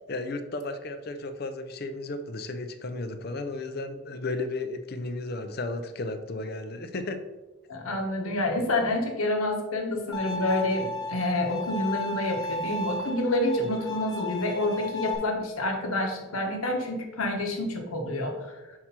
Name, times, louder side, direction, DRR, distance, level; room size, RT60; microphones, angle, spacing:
voice 1, 0.1-7.2, left 2 dB, 45° left, 9 dB, 0.5 m, -34 dB
voice 2, 7.7-18.5, left 1 dB, 80° left, 3 dB, 1.2 m, -28 dB
Bowed string instrument, 10.1-15.2, left 2 dB, 20° left, 0.8 m, -34 dB
5.9 x 4.8 x 4.3 m, 1.1 s
head